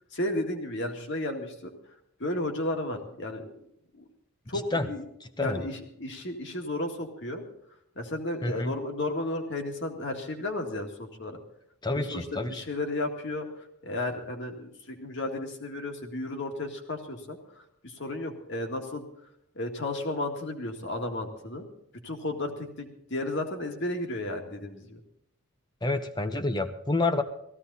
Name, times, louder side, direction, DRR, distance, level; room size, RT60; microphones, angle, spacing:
voice 1, 0.1-1.7 2.2-3.5 3.9-4.1 4.5-5.0 5.4-7.5 8.0-11.4 11.9-19.0 19.5-21.7 22.0-25.0, left 1 dB, 55° left, 3 dB, 2.1 m, -33 dB
voice 2, 4.5-4.9 5.4-5.7 8.4-8.7 11.8-12.6 25.8-27.2, left 2 dB, 20° left, 9 dB, 0.9 m, -28 dB
17.0 x 15.0 x 4.1 m, 0.76 s
head